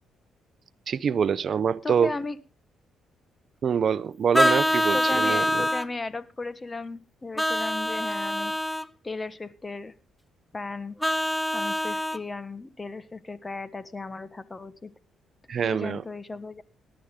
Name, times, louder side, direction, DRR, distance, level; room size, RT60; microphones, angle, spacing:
voice 1, 0.9-2.1 3.6-5.6 15.5-16.0, right 7 dB, 55° right, 0.7 m, -25 dB
voice 2, 1.8-2.4 4.4-8.5 9.0-9.9 10.5-10.9 11.5-14.9 15.6-16.6, left 3 dB, 25° left, 1.5 m, -36 dB
Vehicle horn car horn honking, 4.3-5.9 7.4-8.9 11.0-12.2, left 1 dB, 5° left, 0.7 m, -25 dB
18.5 x 11.0 x 3.7 m
cardioid pair, 90°, 0 cm